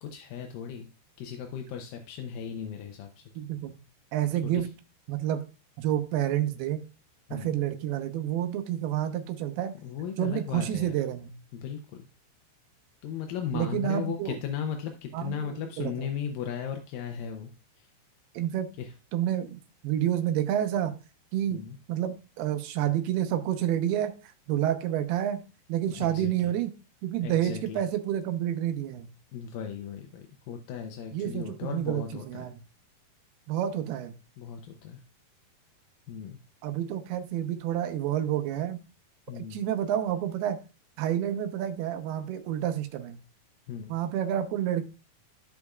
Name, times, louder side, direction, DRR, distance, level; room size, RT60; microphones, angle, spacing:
voice 1, 0.0-0.9 1.2-3.2 4.4-4.5 7.3-7.6 9.8-11.0 11.5-11.8 13.0-17.5 17.8-17.9 18.8-18.9 21.5-21.8 25.9-26.5 27.2-27.8 29.3-32.5 34.4-35.0 36.1-36.4 39.3-39.6 43.7-43.9, left 8 dB, 75° left, 4 dB, 2.1 m, -36 dB
voice 2, 3.4-3.7 4.1-4.7 5.1-5.4 5.8-6.8 7.3-9.7 10.2-11.3 13.5-14.4 15.1-16.1 18.3-18.7 19.1-21.0 21.3-21.6 21.9-25.4 25.7-26.7 27.0-29.1 31.1-32.6 33.5-34.2 36.6-38.8 39.3-40.6 41.0-43.2 43.9-44.8, right 11 dB, 80° right, 7 dB, 2.7 m, -29 dB
14.0 x 5.1 x 2.3 m, 0.31 s
omnidirectional pair, 4.7 m